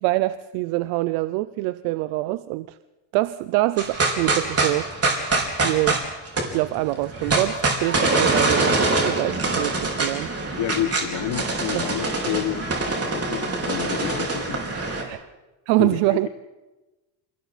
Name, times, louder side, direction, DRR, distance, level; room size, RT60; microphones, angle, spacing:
voice 1, 0.0-2.8 3.1-5.2 5.6-6.0 6.5-10.5 11.7-11.9 15.0-15.2 15.7-16.3, right 18 dB, 85° right, 14 dB, 0.7 m, -25 dB
sound 1, 3.8-15.0, right 3 dB, 30° right, 4.5 m, -24 dB
voice 2, 10.6-12.7 13.1-14.6 15.8-16.3, left 12 dB, 65° left, 7 dB, 1.5 m, -29 dB
29.0 x 24.5 x 4.2 m, 1.1 s
supercardioid pair, 95°, 47 cm